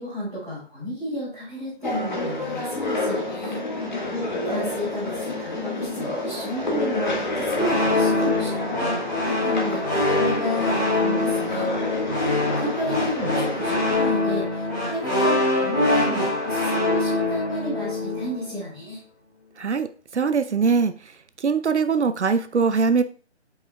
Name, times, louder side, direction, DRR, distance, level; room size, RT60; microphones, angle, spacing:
voice 1, 0.0-3.6 4.4-9.8 10.2-11.7 12.5-19.0, equal, ahead, -18 dB, 1.2 m, -32 dB
sound 1, 1.8-14.0, left 2 dB, 40° left, 1.5 m, -29 dB
sound 2, 7.5-18.4, left 2 dB, 15° left, 1.4 m, -24 dB
voice 2, 19.6-20.9 21.4-23.0, right 5 dB, 75° right, 11 dB, 0.6 m, -22 dB
8.1 x 5.5 x 2.2 m, 0.41 s
figure-of-eight pair, 175°, 35 cm